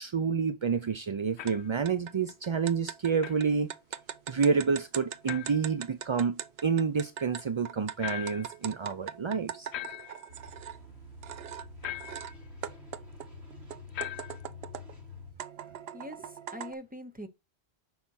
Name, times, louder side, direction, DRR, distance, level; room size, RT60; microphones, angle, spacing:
voice 1, 0.0-3.7 4.3-9.7, right 5 dB, 45° right, 0.4 m, -29 dB
sound 1, 1.4-1.7 3.2-3.4 5.3-5.7 8.0-8.6 9.7-10.3 11.8-12.4 13.9-14.5, left 13 dB, 85° left, 1.0 m, -39 dB
sound 2, 1.5-1.6 1.8-10.8 11.2-12.3 12.6-15.0 15.4-16.7, right 9 dB, 70° right, 0.9 m, -41 dB
sound 3, 10.3-15.3, left 3 dB, 90° right, 4.2 m, -48 dB
voice 2, 15.7-17.3, equal, 10° right, 1.3 m, -43 dB
7.3 x 5.7 x 4.2 m
omnidirectional pair, 1.1 m